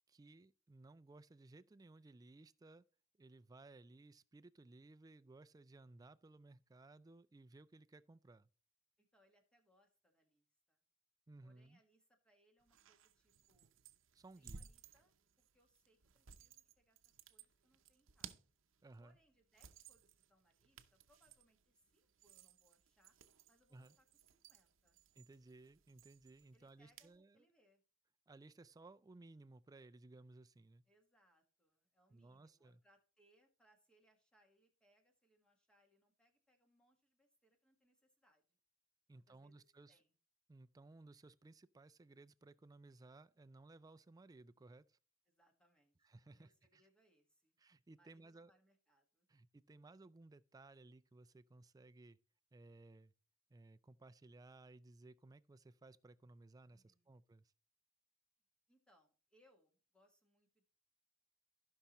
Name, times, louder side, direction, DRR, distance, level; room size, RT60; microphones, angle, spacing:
voice 1, 0.1-2.8 3.2-8.5 11.3-11.8 14.1-14.7 18.8-19.2 23.7-24.0 25.2-27.5 28.3-30.8 32.1-32.8 39.1-40.0 40.5-45.0 46.0-46.8 47.6-48.5 49.3-52.2 52.5-53.1 53.5-57.5, right 2 dB, 20° right, 0.3 m, -60 dB
voice 2, 9.0-10.8 11.4-13.7 14.4-18.4 19.0-23.1 23.5-24.0 24.3-25.0 26.5-27.8 30.9-38.4 39.1-40.1 45.3-47.5 48.0-49.3 56.7-57.1 58.7-60.6, equal, 5° left, 1.5 m, -76 dB
sound 1, 12.6-27.2, right 7 dB, 75° right, 0.7 m, -61 dB
15.5 x 5.6 x 3.0 m
head